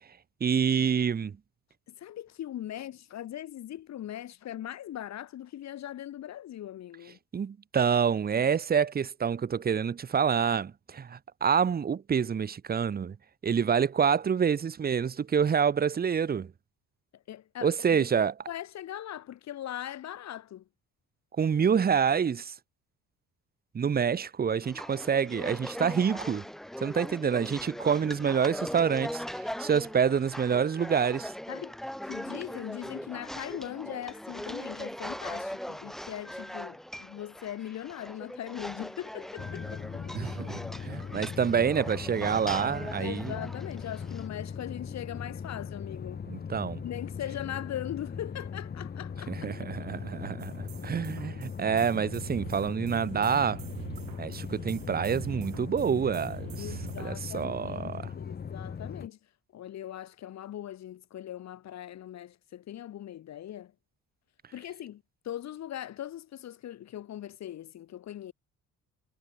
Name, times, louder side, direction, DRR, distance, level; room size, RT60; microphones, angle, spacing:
voice 1, 0.4-1.3 7.3-13.2 13.4-16.5 17.6-18.4 21.4-22.5 23.7-26.5 26.8-31.3 40.1-43.3 46.3-46.8 49.3-53.6 54.2-56.7 57.0-58.1, right 7 dB, 25° right, 1.5 m, -27 dB
voice 2, 1.9-7.2 17.3-18.1 18.5-20.6 31.5-31.7 32.1-40.0 43.0-46.3 46.8-49.4 49.8-49.9 56.6-59.2 59.5-63.7 64.5-68.3, left 12 dB, 55° left, 1.7 m, -40 dB
sound 1, 24.6-44.3, equal, ahead, 1.0 m, -40 dB
sound 2, 39.4-59.1, left 6 dB, 30° left, 2.5 m, -39 dB
sound 3, 50.4-57.5, right 15 dB, 80° right, 2.8 m, -45 dB
cardioid pair, 170°, 33 cm